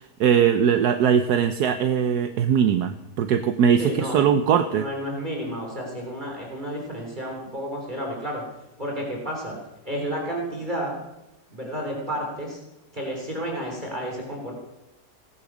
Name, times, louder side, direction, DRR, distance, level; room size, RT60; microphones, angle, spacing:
voice 1, 0.0-4.8, right 8 dB, 70° right, 9 dB, 1.3 m, -21 dB
voice 2, 3.8-4.4 4.7-8.4 8.8-9.6 9.8-11.0 11.5-12.6 12.9-14.5, equal, 25° right, -1 dB, 3.8 m, -31 dB
18.0 x 10.5 x 6.2 m, 0.93 s
omnidirectional pair, 1.8 m